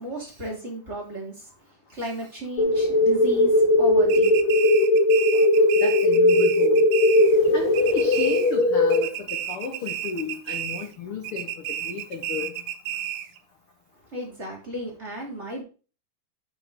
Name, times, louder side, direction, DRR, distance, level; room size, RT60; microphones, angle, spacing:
voice 1, 0.0-1.5 1.9-4.3 14.1-15.6, right 1 dB, 20° right, 2.9 m, -34 dB
sound 1, 2.6-9.0, left 1 dB, 50° left, 2.9 m, -19 dB
sound 2, 4.1-7.5 7.7-8.6 8.9-11.0 11.2-13.4, right 11 dB, 85° right, 1.7 m, -32 dB
voice 2, 5.8-6.9 7.5-12.5, left 5 dB, 70° left, 1.3 m, -33 dB
11.0 x 5.3 x 3.8 m
omnidirectional pair, 4.5 m